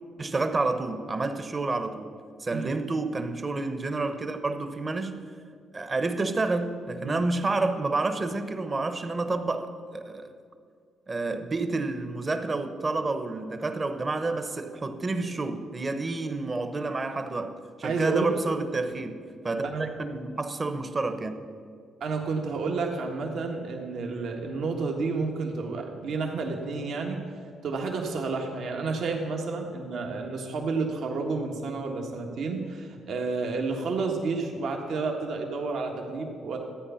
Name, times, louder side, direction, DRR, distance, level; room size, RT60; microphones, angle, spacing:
voice 1, 0.2-2.1 2.4-5.3 5.7-10.3 11.1-21.4, right 3 dB, 30° right, 1.0 m, -29 dB
voice 2, 17.8-18.3 19.6-19.8 22.0-27.2 27.6-36.6, right 4 dB, 70° right, 1.5 m, -30 dB
13.0 x 9.0 x 5.7 m
cardioid pair, 90°, 0 cm